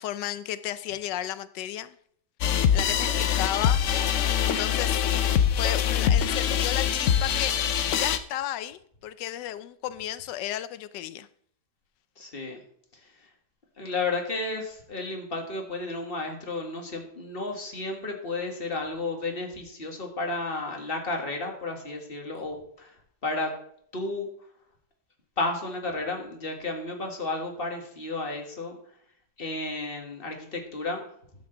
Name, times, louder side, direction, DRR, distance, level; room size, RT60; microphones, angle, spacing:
voice 1, 0.0-2.0 2.5-3.9 4.5-5.2 5.6-11.3, left 12 dB, 90° left, 14 dB, 1.3 m, -34 dB
sound 1, 2.4-8.2, left 9 dB, 60° left, 0.8 m, -24 dB
voice 2, 12.2-12.6 13.0-13.1 13.8-22.9 23.2-23.5 23.9-24.3 25.4-28.8 29.4-31.0, left 3 dB, 35° left, 2 dB, 1.9 m, -32 dB
12.0 x 7.9 x 3.9 m, 0.65 s
omnidirectional pair, 1.8 m